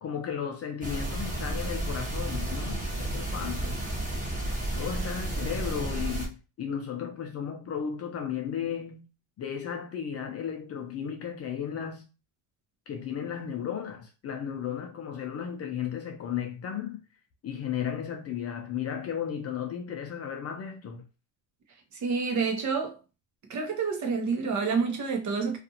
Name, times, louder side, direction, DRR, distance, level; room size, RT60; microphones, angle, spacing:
voice 1, 0.0-3.8 4.7-9.0 9.4-12.0 12.9-17.0 17.4-21.0, left 8 dB, 35° left, 0.5 m, -34 dB
sound 1, 0.8-6.3, right 1 dB, 15° right, 1.2 m, -32 dB
voice 2, 21.9-23.0 23.5-25.6, right 5 dB, 40° right, 0.8 m, -28 dB
2.5 x 2.4 x 2.7 m
cardioid pair, 110°, 44 cm